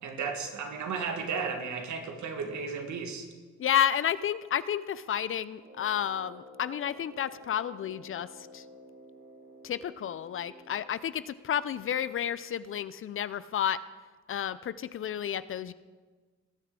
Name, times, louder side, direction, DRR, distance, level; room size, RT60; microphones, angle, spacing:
voice 1, 0.0-3.3, right 5 dB, 70° right, 5 dB, 1.6 m, -34 dB
voice 2, 3.6-8.3 8.5-8.6 9.6-13.8 14.3-15.7, left 9 dB, 45° left, 16 dB, 0.4 m, -31 dB
Brass instrument, 5.5-11.2, left 1 dB, 40° right, 1.7 m, -52 dB
19.5 x 7.0 x 3.7 m, 1.4 s
cardioid pair, 90°, 30 cm